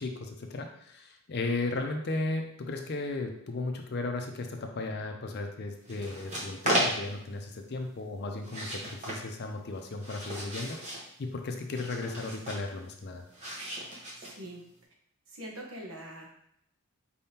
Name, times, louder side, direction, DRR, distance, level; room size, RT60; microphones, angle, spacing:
voice 1, 0.0-13.2, left 2 dB, 50° left, 4 dB, 0.5 m, -35 dB
sound 1, 5.8-7.3 8.4-9.2 9.7-11.1 11.7-12.7 13.3-14.6, right 1 dB, 30° right, 1.0 m, -34 dB
voice 2, 14.1-14.6 15.3-16.3, right 1 dB, 70° right, -1 dB, 1.1 m, -43 dB
4.5 x 3.5 x 2.8 m, 0.69 s
head